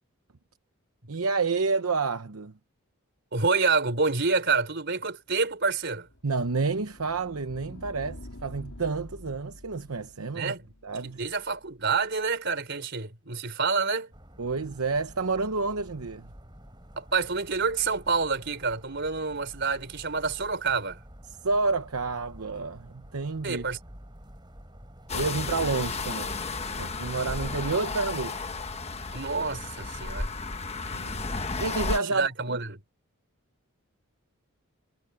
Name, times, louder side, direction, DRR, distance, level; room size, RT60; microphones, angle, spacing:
voice 1, 1.1-2.5 6.2-10.5 10.8-11.2 14.4-16.3 21.3-23.6 25.1-26.4 26.8-28.5 30.9-31.2 31.6-32.6, right 4 dB, 80° right, 0.9 m, -29 dB
voice 2, 3.3-6.1 10.3-10.6 11.0-14.1 17.0-21.0 23.4-23.8 29.1-30.3 32.1-32.8, right 4 dB, 50° right, 4.1 m, -28 dB
sound 1, 5.4-12.2, left 1 dB, 80° left, 3.3 m, -48 dB
sound 2, 14.1-29.7, equal, 20° right, 6.5 m, -50 dB
sound 3, 25.1-32.0, left 3 dB, 30° left, 1.2 m, -33 dB
head